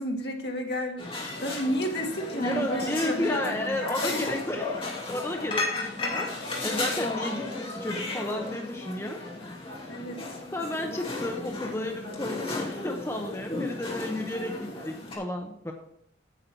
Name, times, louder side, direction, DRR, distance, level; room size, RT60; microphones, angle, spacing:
voice 1, 0.0-4.2 9.9-10.4, equal, 60° left, 2 dB, 1.9 m, -32 dB
sound 1, 1.0-15.2, left 2 dB, 30° left, 2.4 m, -34 dB
voice 2, 2.4-9.2 10.5-15.7, left 1 dB, 15° left, 2 dB, 0.8 m, -33 dB
9.0 x 8.5 x 4.5 m, 0.72 s
head